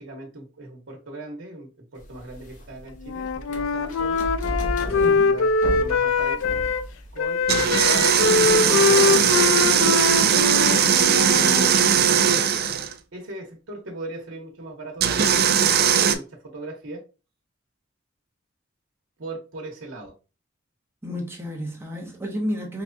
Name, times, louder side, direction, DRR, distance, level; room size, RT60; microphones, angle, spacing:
voice 1, 0.0-4.2 4.8-6.5 7.1-10.0 10.4-12.4 13.1-17.0 19.2-20.1, right 2 dB, 70° right, 1.1 m, -38 dB
sound 1, 2.0-8.6, equal, 40° left, 0.8 m, -35 dB
Wind instrument woodwind instrument, 3.0-6.8 7.2-11.7, left 4 dB, 75° left, 0.3 m, -23 dB
voice 2, 5.0-5.3 21.0-22.8, equal, 10° right, 0.7 m, -31 dB
sound 2, 7.5-12.9 15.0-16.2, right 8 dB, 50° right, 0.4 m, -19 dB
4.7 x 2.2 x 2.6 m
head